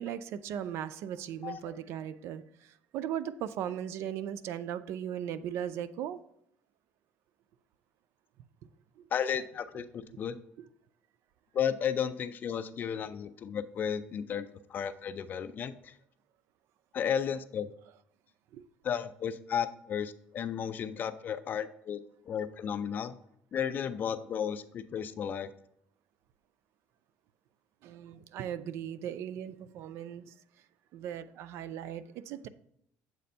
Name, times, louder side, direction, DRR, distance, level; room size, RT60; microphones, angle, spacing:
voice 1, 0.0-6.2 9.0-9.1 10.6-10.7 18.5-18.6 27.8-30.3 30.9-32.5, right 10 dB, 65° right, 14 dB, 0.4 m, -38 dB
voice 2, 9.1-10.4 11.5-15.9 16.9-17.7 18.8-22.0 22.3-23.1 23.5-25.5, left 8 dB, 40° left, 12 dB, 0.4 m, -33 dB
7.5 x 2.5 x 5.4 m, 0.72 s
cardioid pair, 125°, 5 cm